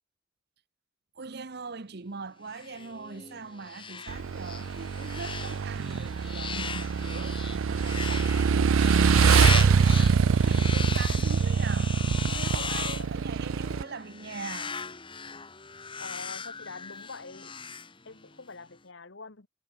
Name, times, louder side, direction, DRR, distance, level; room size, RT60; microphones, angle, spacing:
voice 1, 1.1-11.9 12.3-14.7, right 4 dB, 50° right, 0.8 m, -41 dB
sound 1, 2.5-18.4, left 5 dB, 25° left, 1.8 m, -38 dB
Motorcycle / Engine, 4.1-13.8, right 6 dB, 70° right, 0.4 m, -24 dB
voice 2, 12.8-13.1 13.7-13.8 16.0-17.5 18.0-19.5, left 4 dB, 60° left, 1.3 m, -45 dB
head